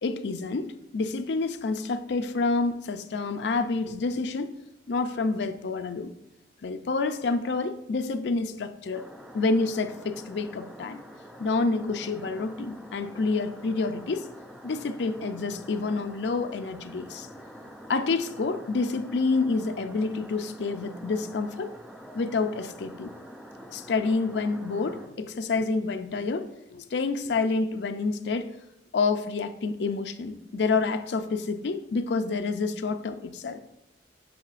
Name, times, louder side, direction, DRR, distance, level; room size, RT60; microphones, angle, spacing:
voice 1, 0.0-4.5 4.9-6.1 6.6-9.0 9.3-11.0 11.4-14.3 14.6-17.3 17.9-21.7 22.1-23.1 23.7-28.5 28.9-33.6, left 3 dB, 70° left, 8 dB, 0.4 m, -28 dB
sound 1, 8.9-25.1, equal, ahead, 0.4 m, -46 dB
8.6 x 5.4 x 2.5 m, 0.90 s
head